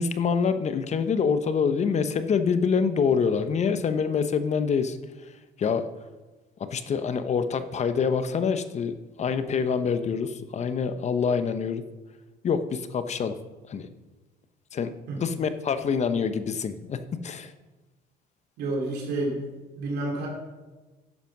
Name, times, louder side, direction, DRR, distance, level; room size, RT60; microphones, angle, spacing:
voice 1, 0.0-5.0 5.6-5.9 6.6-11.8 12.4-13.4 13.7-13.9 14.7-14.9 15.2-17.5, left 6 dB, 40° left, 10 dB, 0.9 m, -26 dB
voice 2, 18.6-19.4 19.8-20.3, right 2 dB, 75° right, -2 dB, 2.8 m, -29 dB
11.0 x 7.4 x 6.1 m, 1.2 s
cardioid pair, 110°, 17 cm